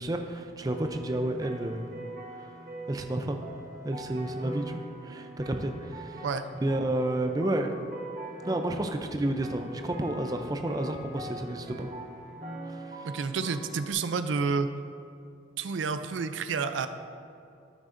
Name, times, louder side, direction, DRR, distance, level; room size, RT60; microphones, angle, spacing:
voice 1, 0.0-1.9 2.4-2.5 2.9-3.4 3.8-6.2 6.6-7.7 8.4-11.9 12.7-13.1, right 1 dB, 20° right, 5 dB, 0.4 m, -31 dB
sound 1, 0.6-13.9, right 2 dB, 40° right, 1.0 m, -43 dB
voice 2, 13.0-14.7 15.6-16.9, right 5 dB, 85° right, 10 dB, 0.4 m, -29 dB
13.0 x 6.2 x 2.6 m, 2.6 s
head